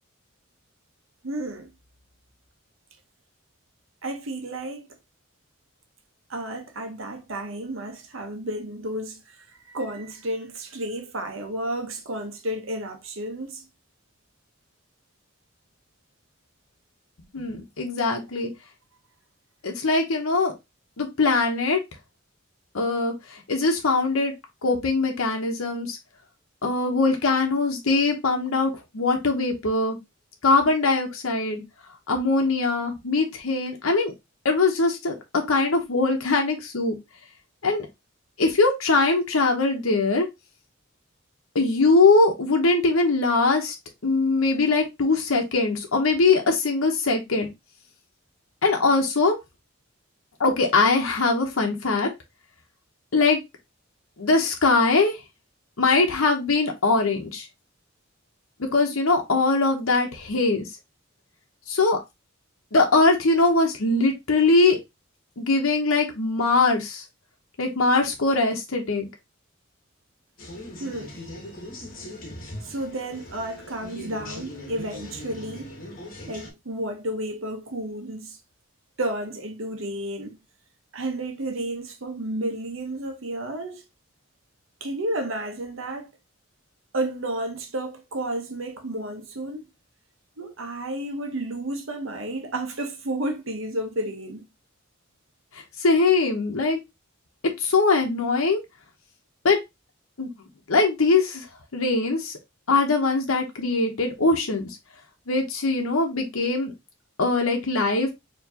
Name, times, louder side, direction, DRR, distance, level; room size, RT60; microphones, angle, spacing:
voice 1, 1.2-1.7 4.0-4.9 6.3-13.7 70.8-71.1 72.6-75.7 76.3-78.4 79.0-80.3 80.9-83.8 84.8-86.1 86.9-89.6 90.4-94.4, right 1 dB, 70° right, 1.0 m, -32 dB
voice 2, 17.3-18.5 19.6-20.5 21.0-21.8 22.7-24.3 24.6-26.0 26.6-30.0 30.4-31.6 32.1-34.1 34.4-35.2 35.5-36.9 37.6-37.9 38.4-40.3 41.5-43.7 44.0-47.5 48.6-49.4 50.4-52.1 53.1-53.4 54.2-55.2 55.8-57.5 58.7-60.7 61.7-62.0 62.7-64.8 65.4-67.0 67.6-69.1 95.5-96.8 97.6-98.6 99.4-99.6 100.2-100.3 100.7-101.5 101.7-102.3 102.7-104.7 105.3-106.7 107.2-108.1, left 3 dB, 80° left, 0.9 m, -22 dB
sound 1, 70.4-76.5, left 1 dB, 45° left, 1.3 m, -40 dB
4.6 x 3.0 x 2.8 m
head